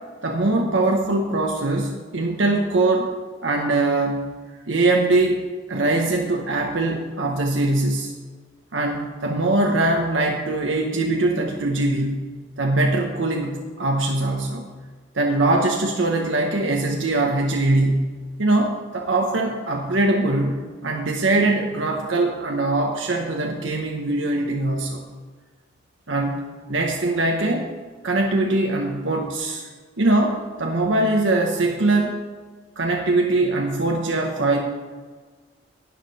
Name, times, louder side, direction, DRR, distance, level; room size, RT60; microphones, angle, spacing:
voice 1, 0.2-3.1 3.4-4.2 4.7-8.1 8.7-12.2 12.6-14.7 15.1-18.1 18.4-25.0 26.1-26.4 26.7-27.7 28.0-29.7 30.0-32.2 32.8-34.6, right 2 dB, 85° right, 1 dB, 1.0 m, -22 dB
12.0 x 9.5 x 4.1 m, 1.4 s
head